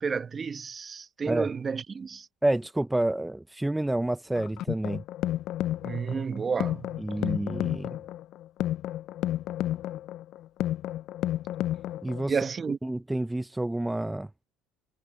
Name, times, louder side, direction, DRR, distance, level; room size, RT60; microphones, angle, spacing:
voice 1, 0.0-2.3 5.8-6.9 12.3-12.8, right 5 dB, 30° right, 1.3 m, -31 dB
voice 2, 2.4-5.0 7.0-8.0 12.0-12.4 12.8-14.3, right 1 dB, 5° right, 0.7 m, -29 dB
sound 1, 4.4-12.3, left 13 dB, 60° left, 0.5 m, -32 dB
supercardioid pair, 100°, 0 cm